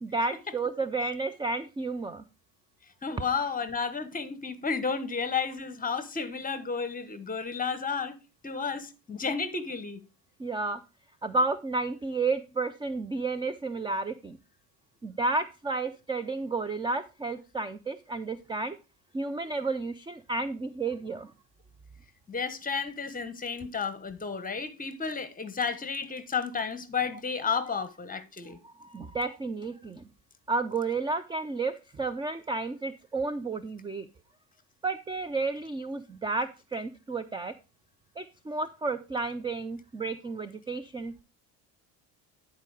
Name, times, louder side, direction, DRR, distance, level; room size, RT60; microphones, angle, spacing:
voice 1, 0.0-2.2 10.4-10.8 11.2-14.4 15.0-18.8 19.1-21.3 28.6-30.1 30.5-34.1 34.8-37.5 38.2-41.1, right 3 dB, 10° right, 0.4 m, -31 dB
voice 2, 3.0-8.2 8.4-10.0 22.3-28.6, left 5 dB, 20° left, 1.1 m, -32 dB
10.0 x 4.6 x 4.8 m
supercardioid pair, 100°, 45 cm